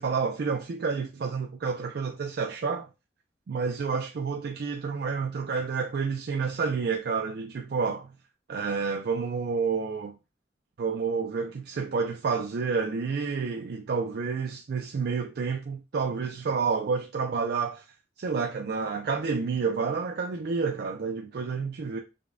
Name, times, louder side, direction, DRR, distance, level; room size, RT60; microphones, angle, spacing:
voice 1, 0.0-2.9 3.5-8.1 8.5-10.1 10.8-17.8 18.2-22.0, right 5 dB, 60° right, 0.4 m, -29 dB
5.0 x 2.2 x 2.5 m
head